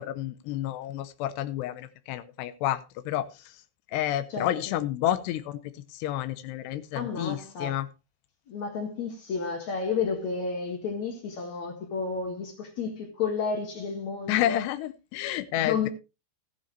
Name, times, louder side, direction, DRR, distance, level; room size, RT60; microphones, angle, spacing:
voice 1, 0.0-3.5 3.9-5.6 5.9-7.9 14.3-15.9, left 13 dB, 90° left, 2.9 m, -30 dB
voice 2, 4.3-4.7 7.0-7.8 8.5-14.6 15.6-15.9, left 5 dB, 55° left, 2.6 m, -31 dB
15.0 x 10.0 x 3.1 m
omnidirectional pair, 4.7 m